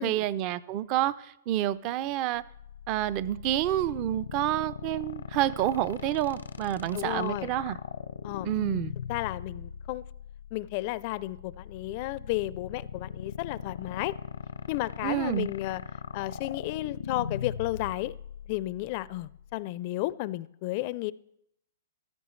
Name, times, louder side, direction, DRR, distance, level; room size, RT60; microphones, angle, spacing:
voice 1, 0.0-2.4 2.9-7.8 8.4-8.9 15.0-15.5, right 13 dB, 35° right, 0.4 m, -28 dB
sound 1, 2.3-19.5, left 7 dB, 85° left, 0.6 m, -39 dB
voice 2, 6.9-7.5 8.2-8.5 9.1-10.0 10.5-14.2 14.7-15.8 16.1-18.2 18.5-21.1, left 18 dB, 40° left, 0.4 m, -33 dB
15.0 x 14.0 x 3.2 m
hypercardioid pair, 140°, 0 cm